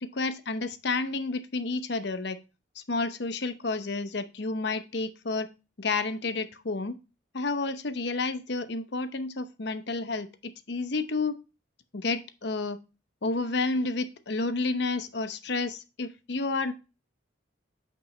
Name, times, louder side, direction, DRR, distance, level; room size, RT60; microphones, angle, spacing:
voice 1, 0.0-2.4 2.8-5.5 5.8-7.0 7.3-11.3 11.9-12.8 13.2-16.7, left 3 dB, 60° left, 10 dB, 0.8 m, -30 dB
8.7 x 5.3 x 3.2 m, 0.30 s
head